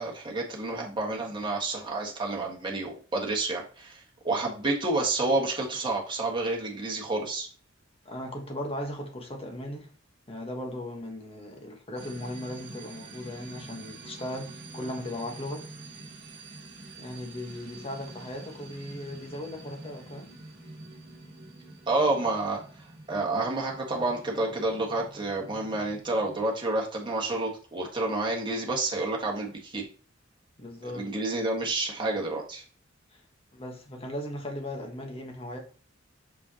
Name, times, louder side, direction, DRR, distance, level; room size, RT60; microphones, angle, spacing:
voice 1, 0.0-7.5 21.9-22.6 23.1-29.8 30.8-32.6, right 2 dB, 25° right, 1.5 m, -29 dB
voice 2, 8.0-9.9 10.3-15.7 17.0-20.3 30.6-31.1 33.1-33.2 33.5-35.6, left 1 dB, 30° left, 1.2 m, -37 dB
sound 1, 12.0-26.4, right 2 dB, 50° right, 1.4 m, -47 dB
6.3 x 5.4 x 2.9 m
head